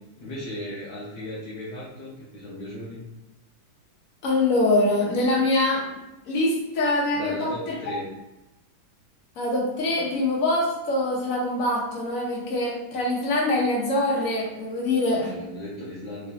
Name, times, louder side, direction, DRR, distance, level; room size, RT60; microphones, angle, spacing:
voice 1, 0.2-3.0 7.1-8.1 15.1-16.3, left 1 dB, 70° left, -6 dB, 1.4 m, -36 dB
voice 2, 4.2-5.8 6.2-7.5 9.4-15.3, left 2 dB, 50° left, -3 dB, 1.3 m, -24 dB
3.8 x 3.6 x 2.9 m, 0.98 s
omnidirectional pair, 2.0 m